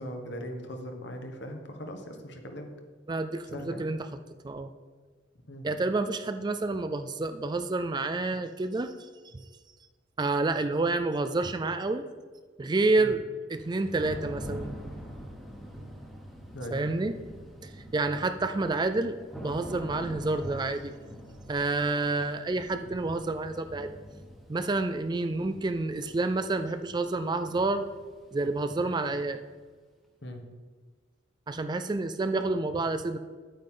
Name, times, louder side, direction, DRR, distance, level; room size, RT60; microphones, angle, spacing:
voice 1, 0.0-2.7 3.5-3.9 5.5-5.7 13.0-13.1 16.5-16.8 30.2-30.4, equal, 60° left, 4 dB, 1.3 m, -39 dB
voice 2, 3.1-4.1 4.4-4.7 5.6-9.3 10.2-12.0 12.6-14.8 16.7-17.1 17.6-21.0 21.5-23.9 24.5-27.9 28.3-29.4 31.5-33.2, right 2 dB, 20° right, 9 dB, 0.4 m, -29 dB
Thunder / Rain, 13.6-29.3, equal, ahead, 1.3 m, -45 dB
9.5 x 9.0 x 3.8 m, 1.4 s
head